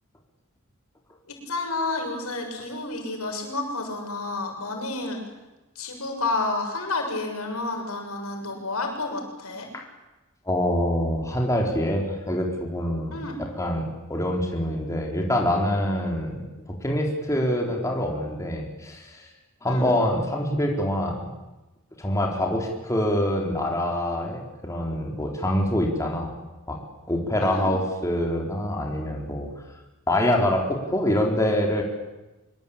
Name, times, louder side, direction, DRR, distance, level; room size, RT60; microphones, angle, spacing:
voice 1, 1.3-5.2 5.7-9.7 13.1-13.4 19.7-19.9 27.4-27.7, left 2 dB, 85° left, 3 dB, 6.7 m, -30 dB
voice 2, 10.5-13.2 13.6-19.3 19.6-21.3 22.0-26.3 26.7-26.8 27.1-29.5 30.1-31.8, left 1 dB, 15° left, 0 dB, 4.2 m, -25 dB
25.0 x 23.0 x 8.9 m, 1.1 s
head